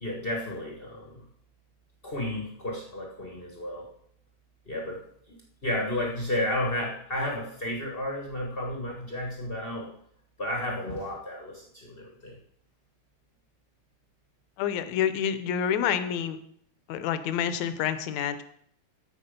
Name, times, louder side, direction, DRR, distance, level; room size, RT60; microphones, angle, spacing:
voice 1, 0.0-1.2 2.0-3.8 4.7-5.0 5.3-5.4 5.6-9.9 10.4-12.3, left 1 dB, 45° left, -1 dB, 0.7 m, -32 dB
voice 2, 14.6-16.4 16.9-18.4, left 9 dB, 75° left, 12 dB, 1.8 m, -28 dB
14.0 x 4.8 x 5.2 m, 0.69 s
omnidirectional pair, 3.4 m